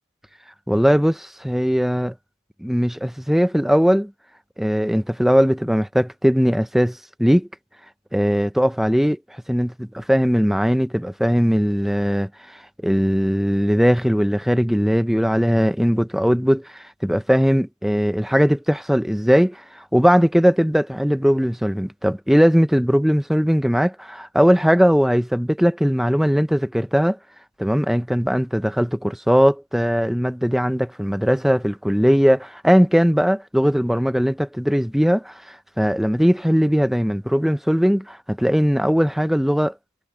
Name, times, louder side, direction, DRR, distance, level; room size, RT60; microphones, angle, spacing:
voice 1, 0.7-2.1 2.6-4.1 4.6-7.5 8.1-9.2 9.5-27.2 27.6-39.7, equal, ahead, 0.5 m, -19 dB
head